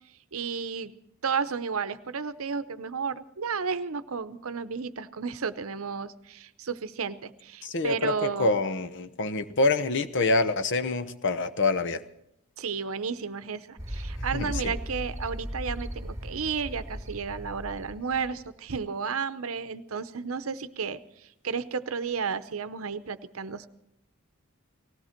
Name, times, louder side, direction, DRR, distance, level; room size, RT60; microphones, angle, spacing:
voice 1, 0.3-0.9 1.2-8.6 12.6-21.0 21.4-23.7, right 5 dB, 70° right, 12 dB, 0.7 m, -32 dB
voice 2, 7.6-12.0 14.3-14.7, left 3 dB, 55° left, 12 dB, 0.9 m, -26 dB
sound 1, 13.8-18.8, equal, 15° right, 2.6 m, -37 dB
19.0 x 16.0 x 4.4 m, 0.81 s
head